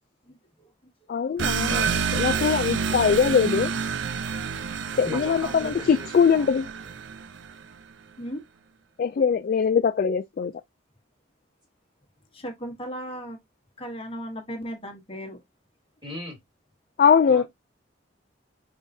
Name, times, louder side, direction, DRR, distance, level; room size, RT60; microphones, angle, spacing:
voice 1, 0.3-0.7 5.4-5.7 8.2-8.4 12.3-13.4 13.8-15.4, equal, 30° left, 1.1 m, -37 dB
voice 2, 1.1-3.7 5.0-6.7 9.0-10.5 17.0-17.4, left 6 dB, 50° left, 0.3 m, -22 dB
sound 1, 1.4-7.7, right 6 dB, 80° right, 0.4 m, -29 dB
voice 3, 5.0-6.5 16.0-16.4 17.3-17.4, left 1 dB, 25° right, 2.4 m, -38 dB
5.0 x 3.6 x 2.6 m
head